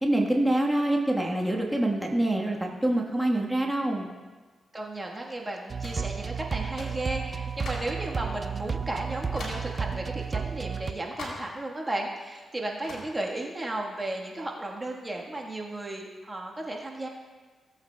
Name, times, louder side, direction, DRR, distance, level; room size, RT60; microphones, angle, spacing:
voice 1, 0.0-4.1, right 1 dB, 5° right, -1 dB, 1.3 m, -25 dB
voice 2, 4.7-17.1, right 2 dB, 25° right, 0 dB, 1.3 m, -34 dB
sound 1, 5.7-10.9, right 6 dB, 45° right, 0.5 m, -32 dB
sound 2, 5.8-6.1 6.8-7.0 7.6-8.0 8.6-8.7 9.4-9.7 11.2-11.5 12.8-13.1, left 2 dB, 75° left, 2.9 m, -40 dB
17.5 x 8.1 x 2.2 m, 1.4 s
cardioid pair, 60°, 0 cm